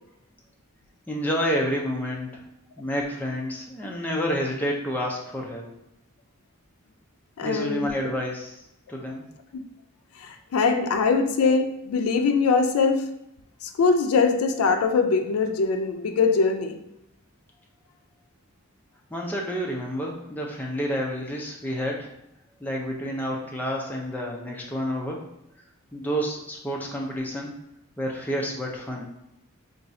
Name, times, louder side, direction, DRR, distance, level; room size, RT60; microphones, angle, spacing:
voice 1, 1.1-2.4 2.8-5.7 7.4-8.6 8.9-9.2 19.1-22.1 22.6-25.2 25.9-27.5 28.0-29.1, equal, 10° left, -1 dB, 0.4 m, -29 dB
voice 2, 7.4-7.9 9.5-9.6 10.2-13.1 13.6-16.8, left 4 dB, 80° left, 7 dB, 0.4 m, -22 dB
2.6 x 2.3 x 4.1 m, 0.83 s
head